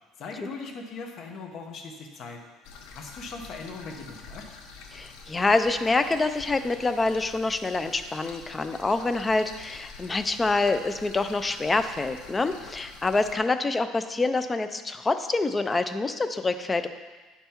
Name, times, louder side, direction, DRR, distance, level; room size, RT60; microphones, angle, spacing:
voice 1, 0.2-2.4 2.9-4.4, left 4 dB, 45° left, 2 dB, 1.0 m, -39 dB
sound 1, 2.6-13.4, left 4 dB, 85° left, 0.9 m, -47 dB
voice 2, 4.9-16.9, left 3 dB, 15° left, 9 dB, 0.4 m, -26 dB
9.1 x 5.5 x 4.4 m, 1.3 s
cardioid pair, 165°, 0 cm